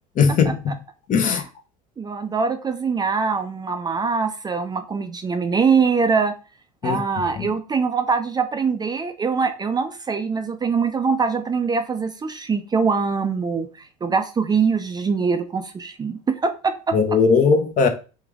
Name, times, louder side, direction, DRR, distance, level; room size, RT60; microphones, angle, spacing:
voice 1, 0.2-0.7 1.1-1.4 6.8-7.0 16.9-17.9, left 5 dB, 40° left, 1.0 m, -18 dB
voice 2, 2.0-6.3 6.8-17.2, right 5 dB, 20° right, 0.5 m, -23 dB
3.4 x 3.4 x 3.5 m
hypercardioid pair, 85°, 20 cm